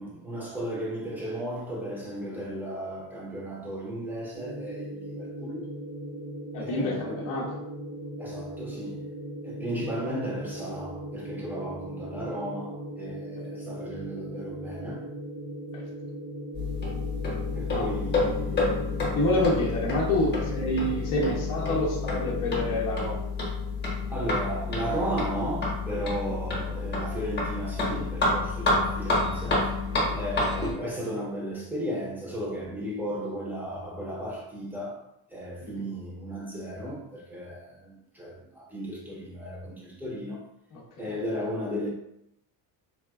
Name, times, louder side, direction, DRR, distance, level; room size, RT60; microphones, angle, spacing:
voice 1, 0.0-5.7 6.6-7.3 8.2-9.1 9.4-15.1 17.5-18.8 19.3-19.5 23.8-35.0 35.3-40.5 41.0-41.9, right 1 dB, 5° right, 0.7 m, -35 dB
sound 1, 4.3-22.8, right 1 dB, 90° right, 1.0 m, -38 dB
voice 2, 6.5-7.6 15.7-15.8 17.7-17.9 19.2-23.2 29.9-30.2 35.6-35.9 40.7-41.2, left 1 dB, 50° left, 0.6 m, -28 dB
sound 2, 16.5-30.7, left 3 dB, 25° left, 0.9 m, -29 dB
4.1 x 2.1 x 2.3 m
cardioid pair, 145°, 42 cm